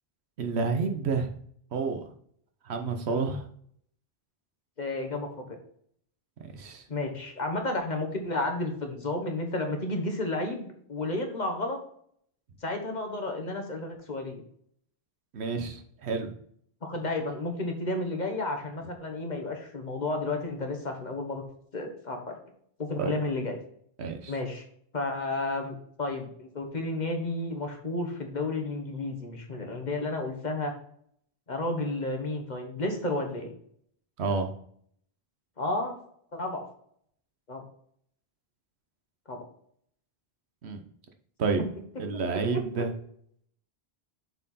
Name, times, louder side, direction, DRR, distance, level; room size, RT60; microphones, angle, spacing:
voice 1, 0.4-1.3 1.7-2.0 2.6-3.4 6.5-6.8 15.3-16.3 23.0-23.1 24.0-24.3 34.2-34.5 40.6-40.8 41.4-41.6 42.0-42.9, right 4 dB, 90° right, 5 dB, 1.2 m, -29 dB
voice 2, 4.8-5.6 6.9-11.8 12.6-14.4 16.8-21.4 21.7-22.3 22.8-23.6 24.3-24.6 24.9-30.7 31.5-33.5 35.6-36.0 36.3-36.6 37.5-37.6 39.3-39.4 42.5-42.6, left 2 dB, 45° left, 4 dB, 1.3 m, -32 dB
6.8 x 4.4 x 4.1 m, 0.65 s
omnidirectional pair, 1.1 m